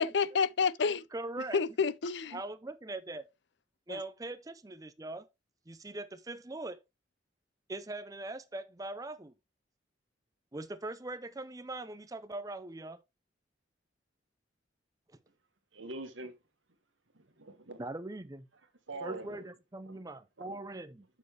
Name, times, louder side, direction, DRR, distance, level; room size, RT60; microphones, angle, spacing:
voice 1, 0.0-1.0 1.5-2.4 3.9-4.0, left 5 dB, 65° left, 0.5 m, -29 dB
voice 2, 1.1-1.6 2.3-3.3 3.9-5.3 5.7-6.8 7.7-9.3 10.5-13.0 17.8-18.5 19.0-21.0, right 2 dB, 20° right, 0.5 m, -41 dB
voice 3, 15.7-16.3 17.1-17.8 18.9-19.5 20.4-20.6, right 2 dB, 85° right, 1.6 m, -43 dB
7.1 x 6.3 x 3.2 m
head